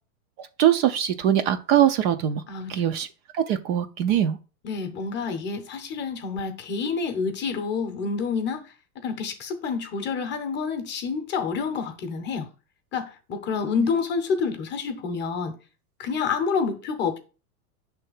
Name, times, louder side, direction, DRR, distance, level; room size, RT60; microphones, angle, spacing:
voice 1, 0.4-2.4 2.7-3.1 3.3-4.4, right 10 dB, 40° right, 0.5 m, -22 dB
voice 2, 4.6-8.6 9.0-12.5 12.9-15.5 16.0-17.2, left 5 dB, 25° left, 0.8 m, -28 dB
5.5 x 3.4 x 5.4 m
supercardioid pair, 135°, 47 cm